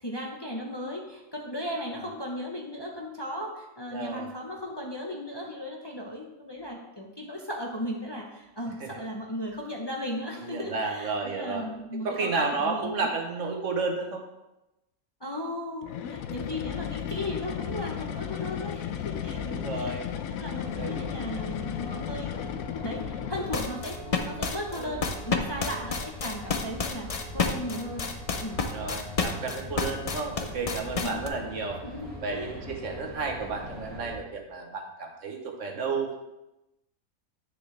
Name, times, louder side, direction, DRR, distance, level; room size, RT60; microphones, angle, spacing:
voice 1, 0.0-13.1 15.2-22.5 22.8-28.1 28.4-28.6 31.0-31.2 31.8-32.6, left 1 dB, 20° left, -1 dB, 0.8 m, -36 dB
voice 2, 3.9-4.3 8.8-9.0 10.4-11.7 12.0-14.2 19.3-20.1 20.8-21.2 24.7-25.0 28.7-31.8 32.2-36.2, right 4 dB, 60° right, 2 dB, 1.3 m, -32 dB
sound 1, 15.8-23.9, left 9 dB, 80° left, 1.0 m, -34 dB
sound 2, 20.6-34.2, equal, 10° right, 1.5 m, -42 dB
sound 3, 23.5-31.3, left 5 dB, 45° left, 0.4 m, -29 dB
9.6 x 6.6 x 3.3 m, 0.96 s
omnidirectional pair, 1.5 m